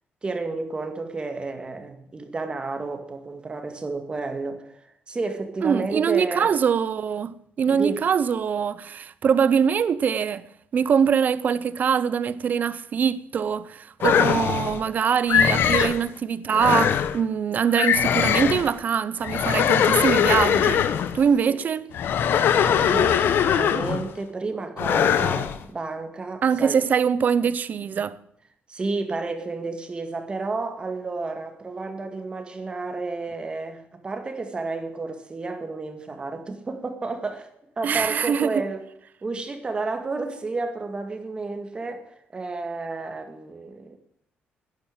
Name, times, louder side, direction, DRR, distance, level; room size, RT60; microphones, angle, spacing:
voice 1, 0.2-6.5 7.7-8.0 15.8-15.9 21.5-21.6 22.6-26.8 28.7-37.5 37.8-38.9 39.2-44.0, right 3 dB, 25° right, 2.1 m, -31 dB
voice 2, 5.6-10.4 10.7-20.9 21.1-21.8 26.4-28.2 37.8-38.6, right 7 dB, 45° right, 0.8 m, -23 dB
sound 1, 14.0-14.8 15.3-16.0 16.5-17.2 17.7-18.7 19.2-21.2 21.9-24.1 24.8-25.6, left 8 dB, 70° left, 1.1 m, -21 dB
11.5 x 10.5 x 8.9 m
cardioid pair, 130°, 4 cm